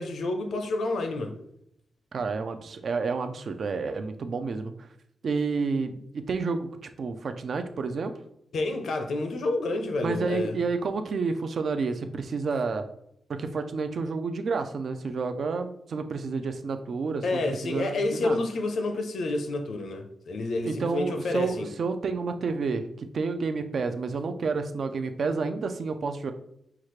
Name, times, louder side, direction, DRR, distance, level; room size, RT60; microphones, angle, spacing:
voice 1, 0.0-1.4 8.5-10.6 17.2-21.7, left 2 dB, 75° left, 0.6 m, -29 dB
voice 2, 2.1-4.9 5.2-8.1 10.0-12.9 13.3-18.4 20.6-26.3, right 4 dB, 55° right, 0.4 m, -30 dB
5.8 x 2.4 x 3.2 m
wide cardioid pair, 155°, 0 cm